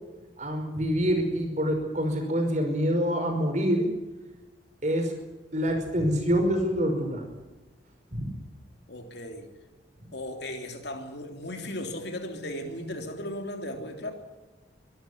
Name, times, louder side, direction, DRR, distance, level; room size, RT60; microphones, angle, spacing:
voice 1, 0.4-3.9 4.8-5.2 5.5-7.2 8.1-8.3, equal, 40° right, 4 dB, 5.4 m, -26 dB
voice 2, 8.9-9.5 10.1-14.1, left 1 dB, 65° left, 5 dB, 3.4 m, -36 dB
23.5 x 12.5 x 9.8 m, 1.1 s
head